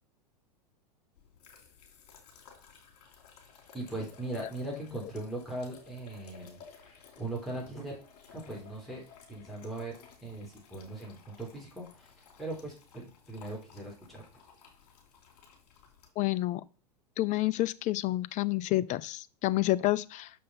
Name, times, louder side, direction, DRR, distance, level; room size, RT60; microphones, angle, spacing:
sound 1, 1.1-16.1, left 6 dB, 65° left, 3.4 m, -56 dB
voice 1, 3.7-8.0 8.3-9.0 9.3-10.0 10.2-12.1 12.4-14.2, right 2 dB, ahead, 3.5 m, -39 dB
voice 2, 16.2-16.6 17.2-20.3, left 17 dB, 35° left, 0.6 m, -29 dB
6.9 x 5.5 x 5.4 m
hypercardioid pair, 105°, 21 cm